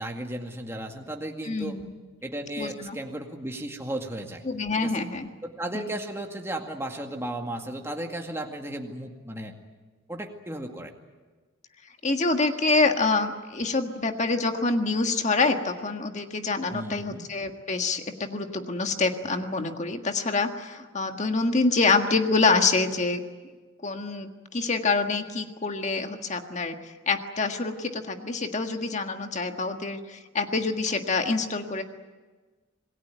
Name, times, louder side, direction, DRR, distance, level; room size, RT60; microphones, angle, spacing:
voice 1, 0.0-1.8 2.2-4.4 4.8-5.0 5.4-9.5 10.1-10.9 16.7-17.3, right 1 dB, 15° right, 2 dB, 2.1 m, -35 dB
voice 2, 1.5-1.9 2.6-3.0 4.5-5.3 5.7-5.9 12.0-23.2 23.8-26.8 27.1-31.8, left 3 dB, 35° left, 6 dB, 1.7 m, -26 dB
27.0 x 20.0 x 9.3 m, 1.3 s
head